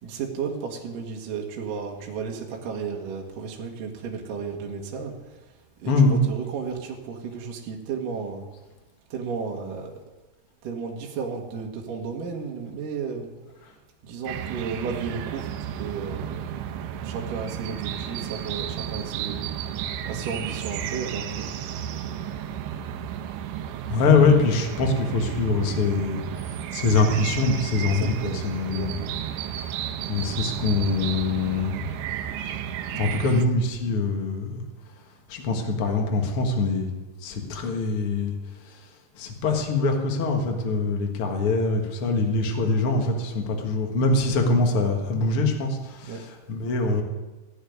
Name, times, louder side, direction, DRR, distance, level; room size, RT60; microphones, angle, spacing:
voice 1, 0.0-5.4 5.8-8.4 9.1-10.0 10.6-13.3 14.0-16.5 17.0-19.5 20.0-21.6 27.9-29.2 46.0-46.2, right 5 dB, 60° right, 1 dB, 2.6 m, -33 dB
voice 2, 5.9-6.2 23.9-28.9 30.1-31.9 32.9-34.6 35.3-36.9 37.2-38.3 39.2-47.0, left 3 dB, 75° left, 3 dB, 1.2 m, -23 dB
sound 1, 14.3-33.5, right 9 dB, 90° right, 3.2 m, -33 dB
16.0 x 7.2 x 9.4 m, 1.2 s
omnidirectional pair, 5.2 m